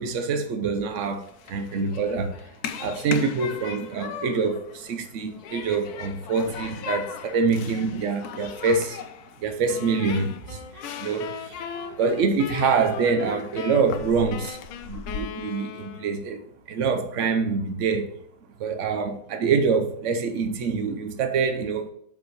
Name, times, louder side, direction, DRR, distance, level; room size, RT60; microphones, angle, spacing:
voice 1, 0.0-2.3 2.8-9.0 9.4-11.6 12.0-16.4 16.7-18.1 18.6-21.9, right 5 dB, 85° right, 0.6 m, -25 dB
Human group actions, 0.9-15.2, left 7 dB, 70° left, 0.9 m, -39 dB
sound 1, 9.7-16.3, left 8 dB, 90° left, 1.5 m, -38 dB
5.5 x 4.9 x 6.3 m
omnidirectional pair, 2.2 m